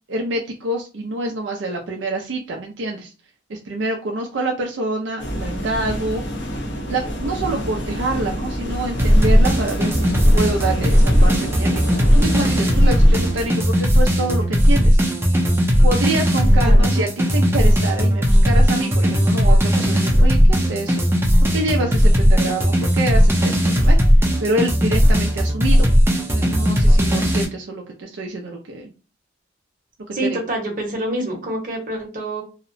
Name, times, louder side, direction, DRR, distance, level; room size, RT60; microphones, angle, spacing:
voice 1, 0.1-3.1 3.5-6.2 6.9-15.0 15.8-21.0 21.5-24.0 24.4-25.9 26.3-28.9 30.2-30.4, right 2 dB, 75° right, 1 dB, 0.4 m, -26 dB
sound 1, 5.2-13.5, equal, 65° left, 0.8 m, -28 dB
sound 2, 9.0-27.4, equal, 15° right, 0.5 m, -16 dB
voice 2, 16.6-16.9 30.1-32.4, right 1 dB, 45° right, 0 dB, 0.9 m, -26 dB
2.8 x 2.1 x 2.5 m, 0.34 s
head